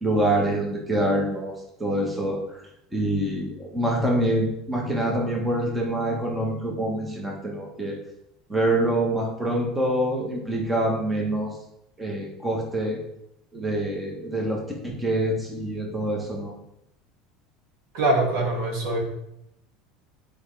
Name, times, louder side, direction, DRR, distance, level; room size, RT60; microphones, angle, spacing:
voice 1, 0.0-1.5 1.8-2.6 2.9-8.0 8.5-11.5 12.0-13.0 13.5-16.5, right 1 dB, 10° right, -2 dB, 1.3 m, -25 dB
voice 2, 17.9-19.0, right 2 dB, 70° right, -1 dB, 2.1 m, -23 dB
8.2 x 5.0 x 3.4 m, 0.81 s
cardioid pair, 155°, 0 cm